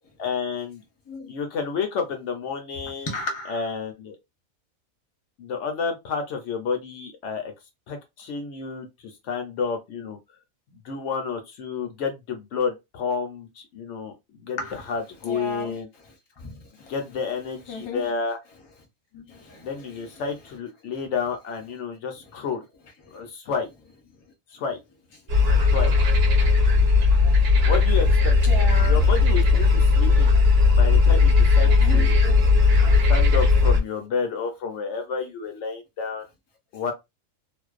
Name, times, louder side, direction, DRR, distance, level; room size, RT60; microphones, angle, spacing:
voice 1, 0.2-0.8 1.3-3.1 3.5-4.2 5.4-7.5 7.9-10.2 10.8-15.9 16.9-18.4 19.6-22.6 23.1-23.7 24.5-24.8 25.7-25.9 27.7-30.4 30.8-32.2 33.1-36.3 36.7-36.9, left 5 dB, 65° left, 0.8 m, -30 dB
voice 2, 3.1-3.6 14.6-14.8 15.3-15.7 16.4-16.6 17.7-18.0 19.1-19.7 28.4-29.0 31.6-32.5 32.8-33.0, left 2 dB, 25° left, 0.6 m, -34 dB
sound 1, 25.3-33.8, left 4 dB, 55° right, 0.8 m, -17 dB
2.5 x 2.1 x 2.4 m
omnidirectional pair, 1.4 m